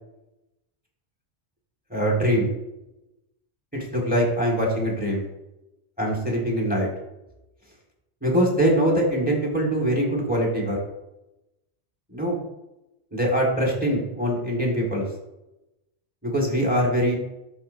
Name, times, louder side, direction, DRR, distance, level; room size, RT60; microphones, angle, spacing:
voice 1, 1.9-2.5 3.7-5.3 6.0-6.9 8.2-10.8 12.1-12.4 13.1-15.0 16.2-17.2, equal, 5° right, -2 dB, 1.7 m, -23 dB
12.0 x 4.2 x 2.7 m, 0.95 s
omnidirectional pair, 1.2 m